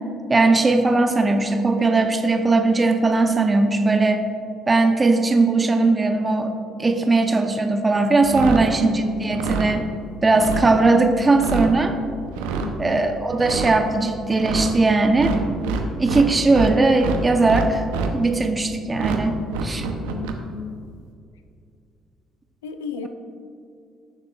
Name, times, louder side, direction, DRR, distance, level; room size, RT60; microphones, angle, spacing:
voice 1, 0.3-4.2 4.7-6.5 6.8-9.8 10.2-12.0 12.8-15.3 16.0-17.8 18.1-19.9, right 3 dB, 25° right, 5 dB, 0.8 m, -19 dB
sound 1, 8.2-8.7 9.2-9.7 10.3-10.7 11.2-11.7 12.3-12.7 13.3-13.7 14.3-14.7 15.2-16.7 17.0-18.1 18.9-19.2 19.5-20.3, right 5 dB, 80° right, 0.8 m, -26 dB
voice 2, 8.6-9.4 12.6-13.1 19.9-20.8 22.6-23.1, left 5 dB, 85° left, 8 dB, 0.5 m, -34 dB
15.5 x 6.8 x 2.4 m, 2.4 s
hypercardioid pair, 50°, 0 cm